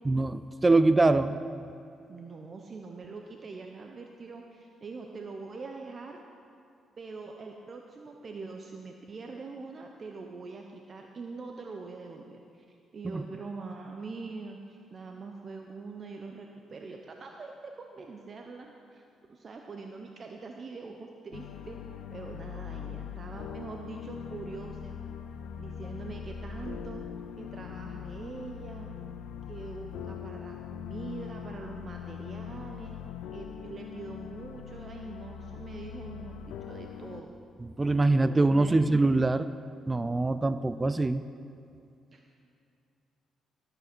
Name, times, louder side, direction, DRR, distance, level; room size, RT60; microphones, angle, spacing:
voice 1, 0.1-1.4 13.0-13.2 37.8-39.5 39.9-41.2, right 2 dB, 20° right, 13 dB, 0.3 m, -24 dB
voice 2, 2.1-6.2 7.0-12.6 12.9-19.0 19.3-21.8 22.1-25.0 25.6-27.0 27.4-28.9 29.5-33.0 33.3-37.3 38.1-39.0 42.1-42.2, right 4 dB, 40° right, 3 dB, 0.8 m, -43 dB
sound 1, 21.3-37.2, left 8 dB, 85° left, 0.5 m, -41 dB
13.5 x 7.9 x 6.0 m, 2.6 s
cardioid pair, 90°, 0 cm